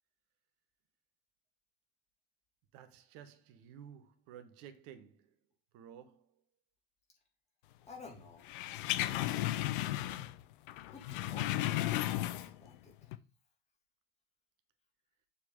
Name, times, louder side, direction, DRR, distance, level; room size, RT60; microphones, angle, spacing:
voice 1, 2.7-5.2 5.7-6.2, right 9 dB, 45° right, 1.3 m, -53 dB
voice 2, 7.9-8.5 9.0-9.5 10.9-13.1, left 3 dB, 20° left, 3.5 m, -53 dB
sound 1, 8.5-10.4 10.7-12.7 13.0-13.2, left 15 dB, 55° left, 0.7 m, -34 dB
7.1 x 4.9 x 5.1 m
figure-of-eight pair, 80°, 31 cm